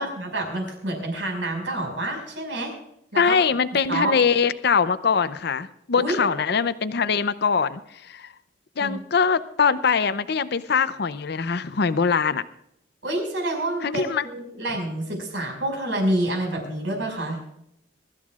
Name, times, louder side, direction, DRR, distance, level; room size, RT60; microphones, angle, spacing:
voice 1, 0.0-2.7 3.1-3.4 3.9-4.2 5.9-6.3 8.8-9.0 13.0-17.4, right 1 dB, 80° right, 2 dB, 5.5 m, -28 dB
voice 2, 3.2-8.3 8.8-12.4 13.8-14.3, left 6 dB, 60° left, 14 dB, 0.6 m, -22 dB
23.5 x 13.5 x 2.4 m, 0.77 s
head